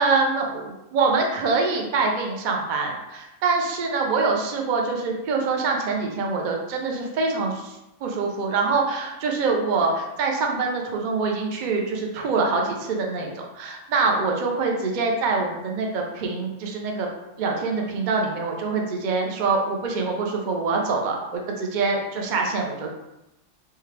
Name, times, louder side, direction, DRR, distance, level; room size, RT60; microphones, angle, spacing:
voice 1, 0.0-17.1 17.4-22.9, right 4 dB, 50° right, 1 dB, 0.6 m, -25 dB
3.4 x 3.3 x 3.3 m, 0.93 s
omnidirectional pair, 1.4 m